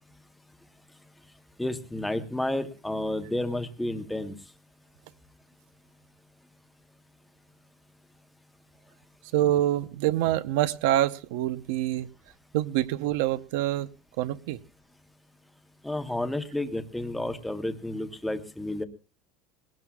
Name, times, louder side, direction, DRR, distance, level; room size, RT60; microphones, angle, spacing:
voice 1, 1.6-4.3 15.8-18.8, left 1 dB, 5° left, 0.9 m, -31 dB
voice 2, 9.3-12.1 12.5-13.9 14.2-14.6, right 13 dB, 75° right, 0.8 m, -26 dB
21.5 x 18.5 x 2.3 m
cardioid pair, 175°, 0 cm